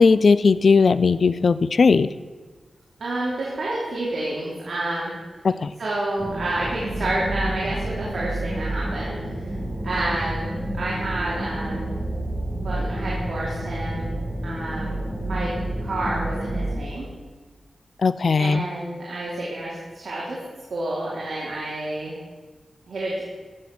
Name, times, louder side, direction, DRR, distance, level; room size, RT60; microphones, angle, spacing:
voice 1, 0.0-2.1 5.4-5.7 18.0-18.6, left 4 dB, 60° left, 15 dB, 0.4 m, -17 dB
voice 2, 3.0-5.1 5.8-9.5 9.8-11.9 12.6-14.1 14.4-15.5 15.8-17.1 18.4-20.4 20.7-22.2 22.9-23.2, right 2 dB, 70° right, -6 dB, 2.9 m, -29 dB
sound 1, 6.2-16.8, right 1 dB, 20° right, 4.2 m, -29 dB
14.0 x 7.1 x 6.1 m, 1.3 s
wide cardioid pair, 95°, 0 cm